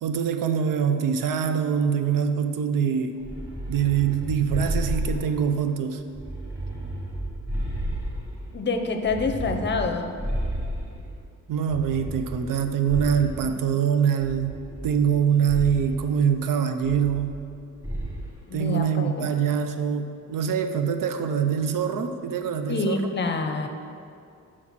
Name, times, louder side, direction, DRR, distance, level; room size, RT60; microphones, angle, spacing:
voice 1, 0.0-3.3 3.7-6.0 11.5-14.6 14.8-17.4 18.5-23.1, right 7 dB, 85° right, 7 dB, 0.6 m, -24 dB
sound 1, 3.2-5.7 6.1-8.6 9.0-11.2 11.7-13.6 14.2-15.2 15.5-16.0 16.8-17.5 17.8-18.3, right 1 dB, 10° right, 1.2 m, -32 dB
voice 2, 8.5-10.2 18.5-19.2 22.7-23.7, left 3 dB, 35° left, 5 dB, 0.6 m, -27 dB
6.1 x 4.1 x 6.0 m, 2.5 s
cardioid pair, 120°, 32 cm